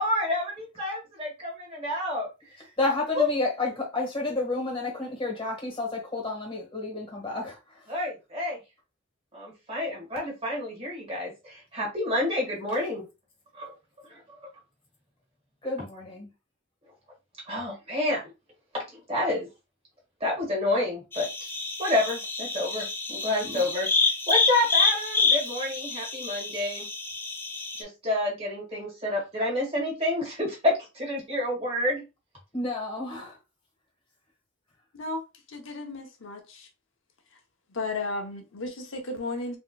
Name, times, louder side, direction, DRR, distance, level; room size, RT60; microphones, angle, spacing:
voice 1, 0.0-2.5 3.2-3.3 7.9-8.6 9.3-13.0 13.5-13.7 14.1-14.5 17.5-18.3 18.7-19.5 20.2-21.5 21.8-23.9 24.3-26.9 27.8-32.0, left 1 dB, 30° right, 1.6 m, -29 dB
voice 2, 2.8-7.9 15.6-16.3 32.5-33.4, left 2 dB, 25° left, 1.4 m, -30 dB
sound 1, 21.1-27.8, left 3 dB, 10° left, 0.4 m, -27 dB
voice 3, 34.9-36.7 37.7-39.6, left 2 dB, 75° left, 0.8 m, -34 dB
3.9 x 2.9 x 2.2 m
head